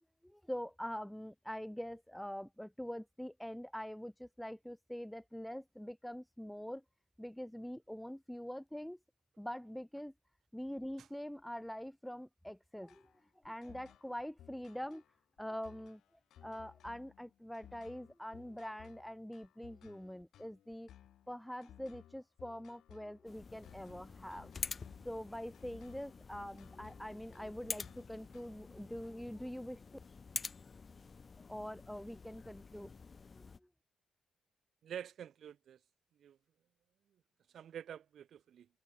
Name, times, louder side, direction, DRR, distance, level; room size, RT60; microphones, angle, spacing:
voice 1, 0.2-6.8 7.2-9.0 9.4-10.1 10.5-13.1 13.4-15.0 15.4-16.0 16.4-20.9 21.3-24.5 25.0-30.0 31.4-32.9 33.3-33.5, equal, 5° left, 1.0 m, -44 dB
sound 1, 12.9-28.7, left 11 dB, 75° left, 4.7 m, -60 dB
sound 2, 23.2-33.6, left 5 dB, 40° left, 3.3 m, -48 dB
voice 2, 34.8-35.8 36.2-36.4 37.5-38.7, right 9 dB, 65° right, 6.3 m, -47 dB
supercardioid pair, 55°, 0 cm